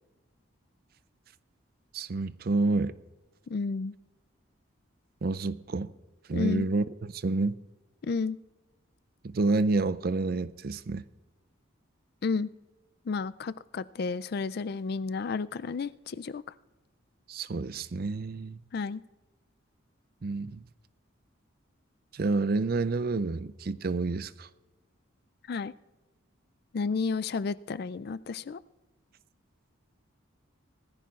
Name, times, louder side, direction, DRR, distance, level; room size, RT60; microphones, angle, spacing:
voice 1, 1.9-3.0 5.2-5.9 6.3-7.6 9.2-11.1 17.3-18.6 20.2-20.7 22.1-24.5, right 3 dB, 45° right, 0.4 m, -29 dB
voice 2, 3.5-3.9 6.3-6.7 8.0-8.4 12.2-12.5 13.1-16.4 18.7-19.0 25.5-25.7 26.7-28.6, left 4 dB, 50° left, 0.3 m, -31 dB
20.5 x 14.0 x 2.4 m
head